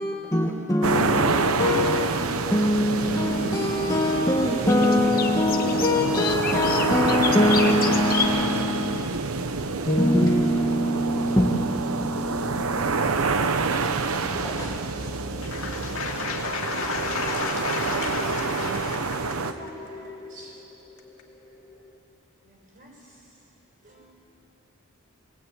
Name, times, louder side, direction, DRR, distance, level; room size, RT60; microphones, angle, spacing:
voice 1, 0.0-9.5 9.9-15.1 15.5-15.6, left 1 dB, 15° left, 1.5 m, -24 dB
sound 1, 0.8-19.5, right 4 dB, 90° right, 0.9 m, -27 dB
sound 2, 3.0-8.3, left 7 dB, 45° left, 1.3 m, -33 dB
sound 3, 12.4-22.0, left 2 dB, 5° right, 3.3 m, -42 dB
voice 2, 15.4-19.2, left 4 dB, 70° left, 2.7 m, -32 dB
voice 3, 19.2-20.6 22.5-22.9 23.8-24.1, right 1 dB, 40° right, 5.4 m, -47 dB
21.5 x 20.0 x 8.9 m
head